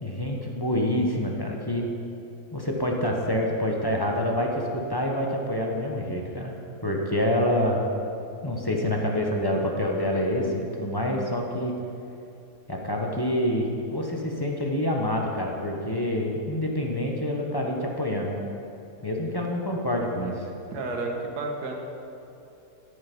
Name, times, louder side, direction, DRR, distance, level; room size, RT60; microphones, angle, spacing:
voice 1, 0.0-1.8 2.5-6.5 6.8-7.9 8.4-11.7 12.7-18.4 19.0-20.5, left 1 dB, 20° left, 0 dB, 0.8 m, -27 dB
voice 2, 20.7-21.8, right 3 dB, 85° right, 1 dB, 1.8 m, -31 dB
13.5 x 6.7 x 5.3 m, 2.7 s
omnidirectional pair, 1.7 m